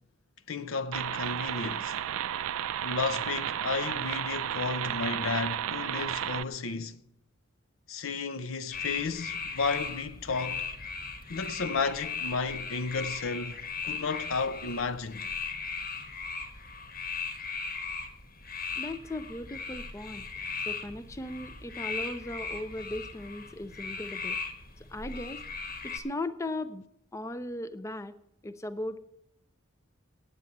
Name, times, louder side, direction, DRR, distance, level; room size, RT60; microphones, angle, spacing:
voice 1, 0.5-2.0 2.8-7.0 7.9-10.7 11.3-15.3, left 4 dB, 80° left, 0.7 m, -33 dB
sound 1, 0.9-6.4, right 10 dB, 85° right, 0.4 m, -33 dB
sound 2, 8.7-26.0, left 5 dB, 45° left, 1.4 m, -38 dB
voice 2, 18.8-20.3 20.7-24.4 24.8-25.4 25.8-26.8 27.1-28.1 28.4-29.0, left 1 dB, 15° left, 0.4 m, -37 dB
9.2 x 8.3 x 8.5 m
head